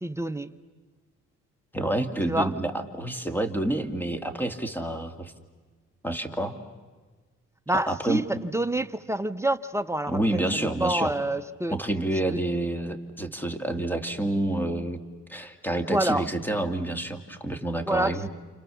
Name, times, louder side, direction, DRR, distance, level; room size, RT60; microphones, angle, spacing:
voice 1, 0.0-0.6 2.3-2.5 7.7-11.8 12.3-12.4 15.9-16.3 17.9-18.3, right 1 dB, 10° right, 10 dB, 0.8 m, -27 dB
voice 2, 1.7-5.3 6.0-6.6 7.9-8.2 10.1-11.1 11.7-15.0 15.3-18.2, right 1 dB, 5° left, 7 dB, 2.3 m, -28 dB
29.5 x 28.5 x 7.0 m, 1.4 s
cardioid pair, 90°, 30 cm